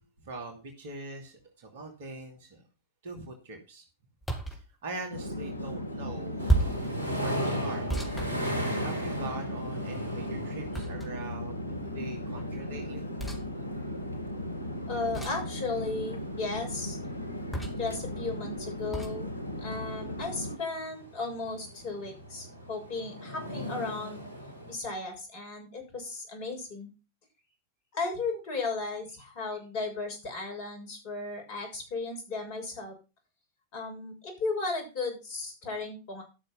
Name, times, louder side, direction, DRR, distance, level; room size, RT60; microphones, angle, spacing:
voice 1, 0.2-2.6 3.0-3.8 4.5-7.9 8.8-13.0, right 2 dB, 55° right, 3 dB, 2.8 m, -42 dB
sound 1, 4.2-4.6 6.5-6.9 7.9-9.1 10.7-11.3 13.2-13.4 15.1-15.5 17.5-17.9 18.9-19.2, right 2 dB, 10° left, 3.5 m, -31 dB
Chatter / Fixed-wing aircraft airplane, 5.1-20.6, left 1 dB, 90° right, 1.7 m, -37 dB
sound 2, 6.4-24.8, equal, 80° left, 3.0 m, -39 dB
voice 2, 14.9-17.0 17.8-19.3 19.6-24.2 24.7-26.9 27.9-33.0 33.7-36.2, left 3 dB, 50° left, 2 dB, 6.9 m, -35 dB
13.0 x 6.7 x 5.7 m, 0.31 s
figure-of-eight pair, 90°, 0 cm